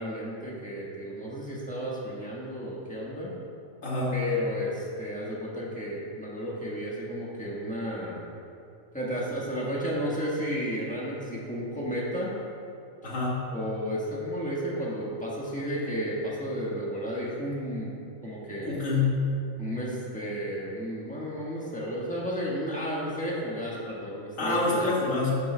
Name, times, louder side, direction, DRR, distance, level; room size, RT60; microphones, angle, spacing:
voice 1, 0.0-3.3 4.1-8.2 8.9-12.3 13.0-13.1 13.5-18.0 18.2-18.8 19.6-24.9, equal, 5° left, -6 dB, 1.3 m, -33 dB
voice 2, 3.8-4.2 13.0-13.4 18.6-19.2 24.4-25.3, left 3 dB, 70° left, -5 dB, 2.0 m, -26 dB
11.0 x 7.9 x 2.3 m, 2.5 s
omnidirectional pair, 1.4 m